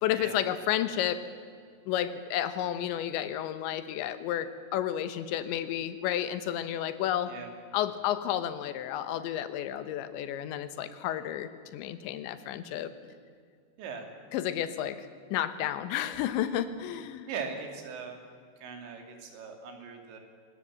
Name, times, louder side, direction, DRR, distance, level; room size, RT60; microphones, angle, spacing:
voice 1, 0.0-1.2 1.9-7.3 7.7-12.9 14.3-17.3, left 11 dB, 85° left, 12 dB, 3.4 m, -31 dB
voice 2, 17.3-18.2 18.6-20.2, right 5 dB, 80° right, 4 dB, 5.0 m, -39 dB
24.5 x 20.0 x 7.6 m, 2.2 s
omnidirectional pair, 5.1 m